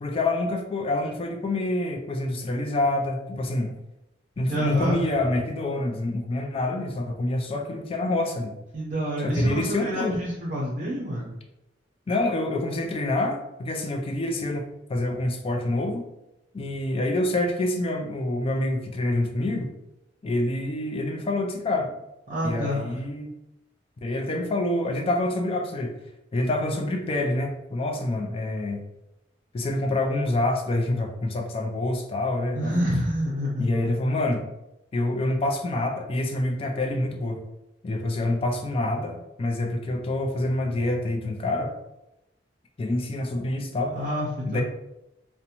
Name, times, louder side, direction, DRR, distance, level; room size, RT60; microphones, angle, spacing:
voice 1, 0.0-3.7 4.4-8.6 9.2-10.2 12.1-16.1 16.5-19.7 20.2-22.0 22.4-23.3 24.0-25.9 26.3-28.8 29.5-32.7 33.6-34.4 34.9-37.4 37.8-41.7 42.8-44.0 44.5-44.6, left 2 dB, 30° left, 3 dB, 0.3 m, -27 dB
voice 2, 4.5-5.0 8.7-11.3 22.3-23.0 32.5-33.7 43.9-44.6, equal, 45° right, -5 dB, 0.5 m, -27 dB
2.6 x 2.1 x 2.8 m, 0.89 s
head